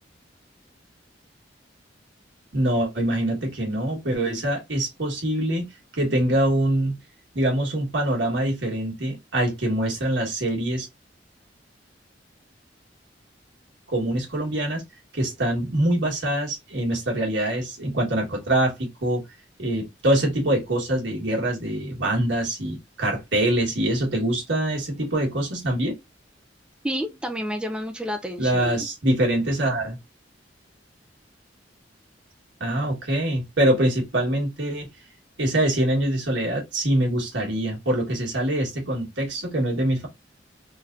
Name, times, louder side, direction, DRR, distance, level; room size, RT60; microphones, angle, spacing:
voice 1, 2.5-5.7 5.9-7.0 7.3-10.9 13.9-14.8 15.1-19.2 19.6-26.0 28.4-30.0 32.6-34.9 35.4-40.1, right 1 dB, 75° right, 1.8 m, -24 dB
voice 2, 26.8-28.9, equal, 5° right, 0.4 m, -30 dB
3.9 x 3.2 x 2.6 m
head